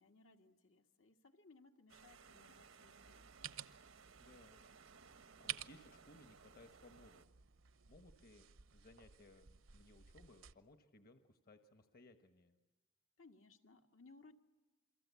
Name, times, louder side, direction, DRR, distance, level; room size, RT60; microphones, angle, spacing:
voice 1, 0.0-3.6 13.2-14.3, left 3 dB, 80° left, 4 dB, 1.9 m, -64 dB
sound 1, 1.9-7.3, right 5 dB, 90° right, 1.1 m, -62 dB
sound 2, 3.0-10.5, right 11 dB, 75° right, 0.8 m, -53 dB
voice 2, 4.2-4.7 5.2-7.3 7.8-12.5, left 2 dB, 50° left, 7 dB, 1.3 m, -63 dB
28.5 x 23.5 x 8.4 m, 1.2 s
head